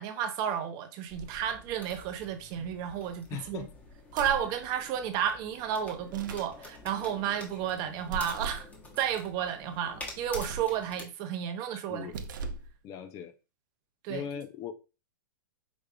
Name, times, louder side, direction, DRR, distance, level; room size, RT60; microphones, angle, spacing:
voice 1, 0.0-3.7 4.1-8.7 9.0-12.1 14.0-14.3, right 9 dB, 35° right, 0.7 m, -32 dB
sound 1, 1.1-11.0, left 2 dB, 15° left, 1.1 m, -48 dB
voice 2, 2.6-3.0 3.3-3.7 4.4-4.5 11.7-12.2 12.8-13.3 14.1-14.7, left 9 dB, 30° left, 0.5 m, -40 dB
sound 2, 4.1-4.5 6.0-6.5 8.1-8.7 10.2-10.8 12.0-12.7, right 4 dB, 70° right, 0.7 m, -38 dB
5.0 x 3.4 x 2.2 m
hypercardioid pair, 135°, 11 cm